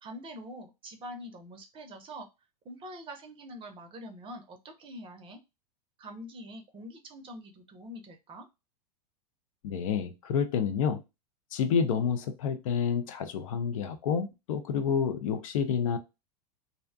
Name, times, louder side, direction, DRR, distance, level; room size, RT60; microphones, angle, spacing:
voice 1, 0.0-2.3 2.6-5.4 6.0-8.5, equal, 25° right, 0.6 m, -44 dB
voice 2, 9.6-11.0 11.5-16.0, left 6 dB, 55° left, 0.5 m, -29 dB
2.5 x 2.1 x 2.4 m
figure-of-eight pair, 90°, 20 cm